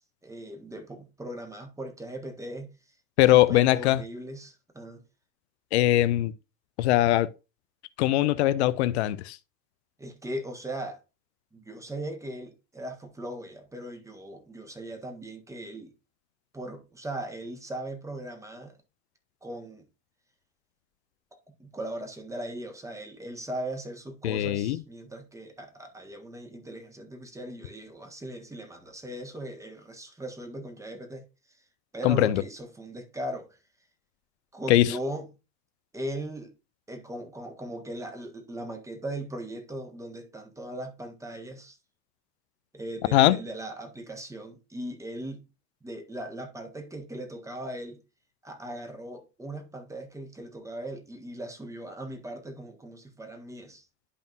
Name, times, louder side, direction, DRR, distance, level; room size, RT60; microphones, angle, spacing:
voice 1, 0.0-2.7 3.3-5.0 10.0-11.0 11.5-15.9 16.5-18.8 19.4-19.8 21.5-31.3 31.9-33.6 34.5-35.3 35.9-36.5 36.9-41.8 42.7-45.4 45.8-48.0 48.4-53.9, right 1 dB, 5° right, 1.5 m, -39 dB
voice 2, 3.2-4.0 5.7-6.3 6.8-7.3 8.0-9.4 24.2-24.8 32.0-32.4 34.7-34.9 43.1-43.4, left 15 dB, 45° left, 0.6 m, -21 dB
11.5 x 5.2 x 2.5 m
figure-of-eight pair, 85°, 49 cm